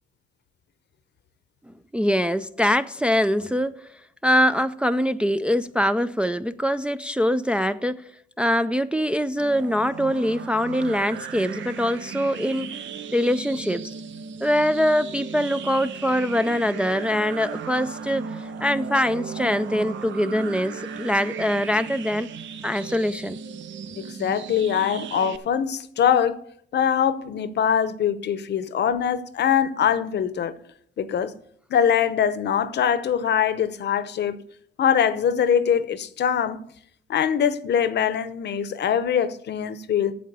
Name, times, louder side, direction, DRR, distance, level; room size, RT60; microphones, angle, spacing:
voice 1, 1.9-3.8 4.2-8.1 8.4-12.8 13.1-13.9 14.4-22.3 22.6-23.4, equal, 5° right, 0.4 m, -23 dB
sound 1, 9.4-25.4, right 6 dB, 70° right, 0.8 m, -36 dB
voice 2, 24.0-26.4 26.7-30.5 31.0-31.3 31.7-34.4 34.8-36.6 37.1-40.1, left 8 dB, 60° left, 0.8 m, -23 dB
8.6 x 7.5 x 6.8 m
cardioid pair, 90°, 20 cm